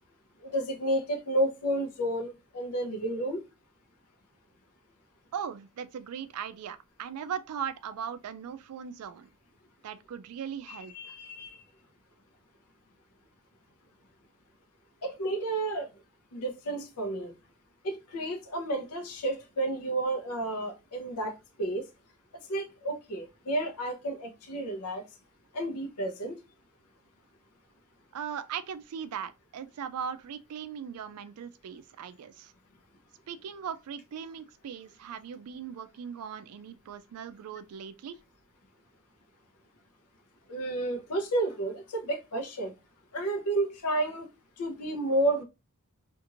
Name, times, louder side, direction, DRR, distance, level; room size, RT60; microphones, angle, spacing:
voice 1, 0.4-3.4 10.7-11.6 15.0-15.9 16.3-17.3 17.8-21.9 22.5-25.1 25.5-26.4 40.5-42.7 43.1-44.3 44.6-45.4, right 1 dB, 85° left, 0.7 m, -31 dB
voice 2, 5.3-9.3 9.8-11.2 28.1-32.5 33.3-38.2, right 7 dB, 75° right, 0.4 m, -39 dB
2.9 x 2.5 x 2.4 m
head